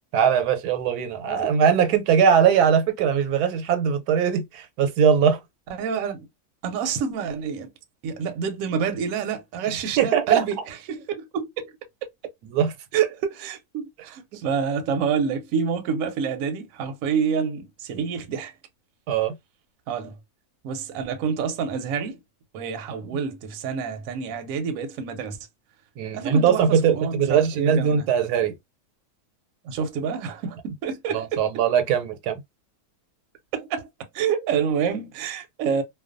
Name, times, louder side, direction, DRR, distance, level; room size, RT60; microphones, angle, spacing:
voice 1, 0.1-5.4 10.0-10.4 12.4-12.7 19.1-19.3 26.0-28.5 31.1-32.4, right 7 dB, 90° right, 1.1 m, -21 dB
voice 2, 5.8-6.3 6.6-7.7 8.0-11.7 12.9-18.5 19.9-20.1 20.6-22.2 22.5-25.4 26.1-28.1 29.6-31.5 33.5-33.9 34.1-35.8, right 6 dB, 70° right, 0.9 m, -28 dB
2.4 x 2.2 x 2.4 m
omnidirectional pair, 1.6 m